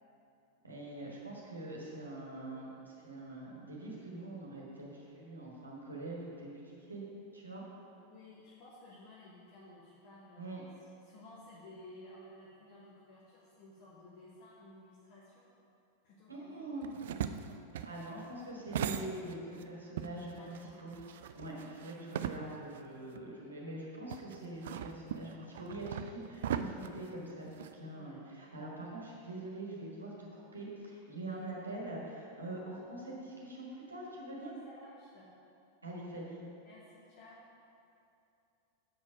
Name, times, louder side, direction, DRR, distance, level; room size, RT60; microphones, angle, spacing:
voice 1, 0.6-7.0 7.3-7.6 10.4-10.6 16.3-16.9 17.8-20.9 21.3-34.5 35.8-36.4, right 2 dB, 80° right, -4 dB, 1.5 m, -44 dB
voice 2, 8.0-10.7 11.0-15.5 16.0-16.9 20.4-20.8 21.5-21.9 27.9-28.2 31.2-31.4 34.3-35.3 36.6-37.4, left 1 dB, 45° left, -6 dB, 1.2 m, -55 dB
sound 1, 16.8-19.6 20.0-22.8 23.2-23.3 24.1-27.7, right 9 dB, 60° right, 0.3 m, -39 dB
7.4 x 6.4 x 4.9 m, 2.7 s
figure-of-eight pair, 90°, 0 cm